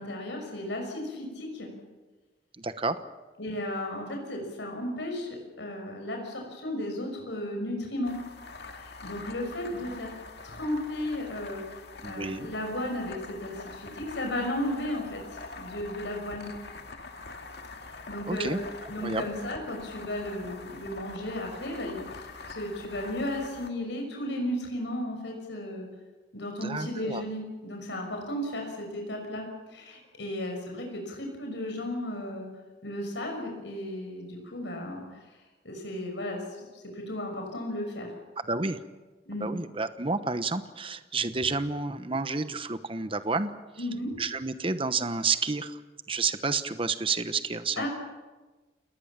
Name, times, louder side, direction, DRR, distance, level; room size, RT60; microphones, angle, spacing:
voice 1, 0.0-1.7 3.4-8.2 8.8-10.1 10.4-11.6 12.0-15.2 15.6-16.5 18.1-18.6 18.9-22.1 22.5-25.9 26.3-32.5 32.8-35.3 35.6-36.4 36.7-38.1 39.3-39.5 43.8-44.2 47.8-47.9, left 1 dB, 80° left, 2 dB, 6.0 m, -34 dB
voice 2, 2.6-3.0 12.0-12.5 18.3-19.2 26.6-27.2 38.5-38.8 39.4-43.5 44.2-45.8 46.1-47.9, right 4 dB, 30° right, 11 dB, 1.0 m, -30 dB
sound 1, 8.0-23.7, left 3 dB, 65° left, 2.2 m, -44 dB
30.0 x 19.0 x 7.4 m, 1.2 s
head